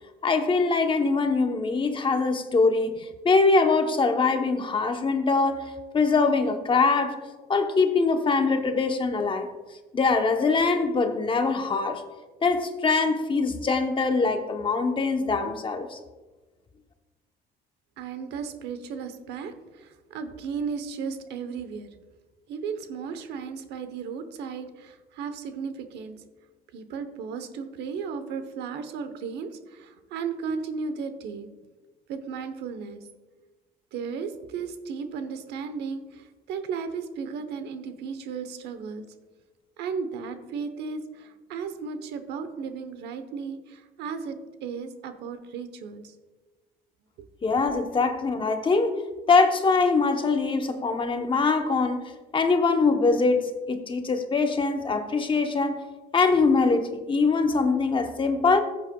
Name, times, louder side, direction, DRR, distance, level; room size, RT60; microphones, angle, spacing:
voice 1, 0.2-7.2 7.5-9.5 9.9-12.0 12.4-16.0 47.4-49.0 49.3-52.0 52.3-55.8 56.1-58.6, left 4 dB, 30° left, 6 dB, 0.9 m, -23 dB
voice 2, 18.0-21.9 22.5-26.2 26.7-31.5 32.1-33.0 33.9-39.0 39.8-46.1 47.7-47.8, right 5 dB, 80° right, 9 dB, 1.0 m, -35 dB
14.0 x 8.1 x 2.3 m, 1.2 s
cardioid pair, 110°, 17 cm